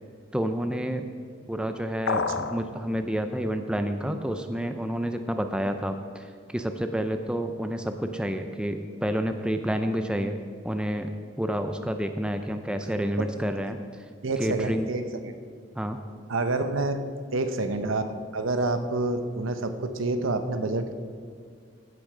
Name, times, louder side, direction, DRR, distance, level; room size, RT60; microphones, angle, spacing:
voice 1, 0.3-1.1 1.5-6.2 6.5-10.4 10.6-11.1 11.4-13.8 14.4-14.9 15.8-16.0, equal, 5° right, 7 dB, 0.4 m, -29 dB
sound 1, 2.1-2.6, left 5 dB, 70° left, 0.5 m, -27 dB
voice 2, 2.1-2.5 13.2-13.4 14.2-15.3 16.3-17.1 17.3-20.9, right 2 dB, 85° right, 9 dB, 0.8 m, -28 dB
15.0 x 6.3 x 4.9 m, 2.1 s
head